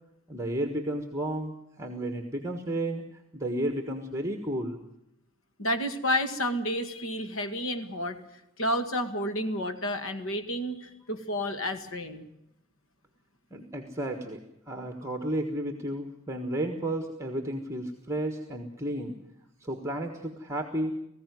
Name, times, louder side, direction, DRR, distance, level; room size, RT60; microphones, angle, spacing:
voice 1, 0.3-4.8 13.5-19.1 19.6-20.9, right 1 dB, 15° right, 6 dB, 1.4 m, -32 dB
voice 2, 5.6-8.2 8.6-12.3, left 1 dB, 70° left, 8 dB, 2.0 m, -30 dB
19.0 x 15.5 x 9.5 m, 0.87 s
head